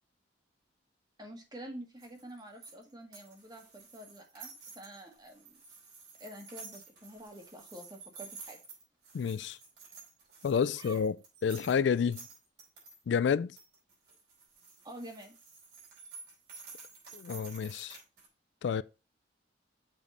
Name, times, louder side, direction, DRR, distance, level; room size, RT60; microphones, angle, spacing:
voice 1, 1.2-5.6 6.2-8.6 10.7-11.1 14.8-15.3, right 1 dB, 25° right, 1.6 m, -48 dB
sound 1, 2.0-13.0 13.6-18.3, right 4 dB, 60° right, 4.6 m, -51 dB
voice 2, 9.1-9.6 10.4-11.2 11.4-12.2 13.1-13.6 17.1-18.0 18.6-18.8, left 6 dB, 75° left, 0.3 m, -29 dB
7.2 x 5.0 x 4.1 m
head